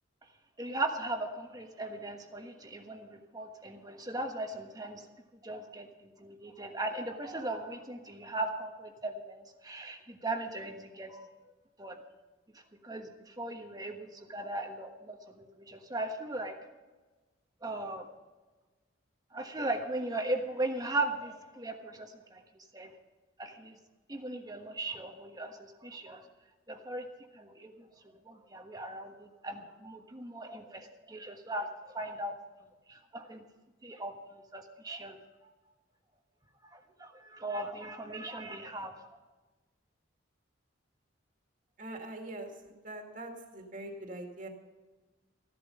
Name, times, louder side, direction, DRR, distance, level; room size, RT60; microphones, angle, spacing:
voice 1, 0.6-5.0 5.4-5.9 6.2-11.3 11.8-12.0 12.8-16.6 17.6-18.1 19.3-22.4 22.7-22.9 23.4-23.8 24.1-26.2 26.7-27.1 27.3-27.9 28.2-31.7 31.9-32.3 32.9-33.4 33.8-34.1 34.5-35.2 36.7-39.1, right 2 dB, 20° right, 4 dB, 1.3 m, -38 dB
voice 2, 41.8-44.5, right 1 dB, 40° right, 2 dB, 2.2 m, -43 dB
15.5 x 11.5 x 5.5 m, 1.2 s
head